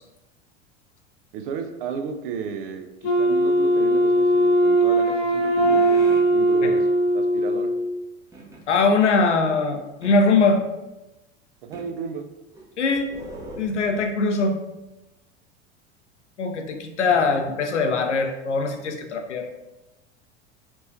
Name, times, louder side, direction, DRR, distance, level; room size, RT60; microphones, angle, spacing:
voice 1, 1.3-5.8 6.3-6.9 7.1-7.7 11.6-12.3, right 6 dB, 50° right, 6 dB, 0.5 m, -33 dB
Wind instrument woodwind instrument, 3.0-8.0, right 1 dB, 50° left, 0.9 m, -20 dB
sound 1, 5.6-6.3 8.3-8.6 10.0-10.6 11.7-11.9 12.5-14.2, right 1 dB, 10° right, 0.7 m, -40 dB
voice 2, 8.7-10.6 12.8-13.1 13.6-14.6 16.4-19.5, left 4 dB, 75° left, 4 dB, 0.6 m, -21 dB
4.4 x 2.9 x 2.7 m, 0.99 s
figure-of-eight pair, 75°, 35 cm